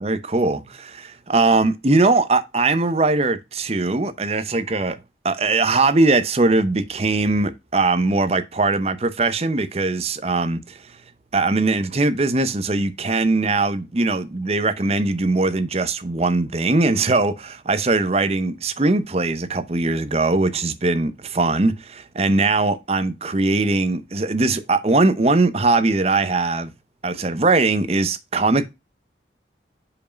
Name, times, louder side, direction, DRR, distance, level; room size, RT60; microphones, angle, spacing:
voice 1, 0.0-5.0 5.2-10.9 11.3-26.7 27.0-28.7, right 3 dB, 35° right, 0.7 m, -20 dB
5.4 x 4.8 x 5.0 m
head